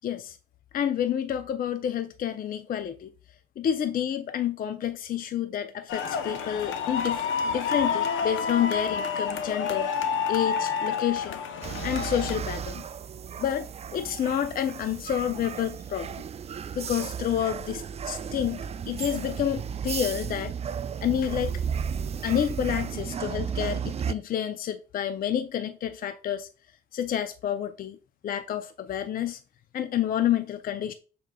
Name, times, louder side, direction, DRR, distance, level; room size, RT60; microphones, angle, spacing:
voice 1, 0.0-0.4 0.7-3.1 3.6-11.4 11.8-12.8 13.4-13.7 13.9-16.2 16.7-18.6 18.9-20.5 21.0-21.6 22.2-26.5 26.9-28.0 28.2-29.4 29.7-30.9, left 10 dB, 45° left, 0.4 m, -29 dB
sound 1, 5.9-12.4, left 6 dB, 75° left, 0.7 m, -29 dB
sound 2, 11.6-24.1, right 7 dB, 35° right, 0.3 m, -34 dB
6.5 x 3.7 x 2.2 m
cardioid pair, 90°, 20 cm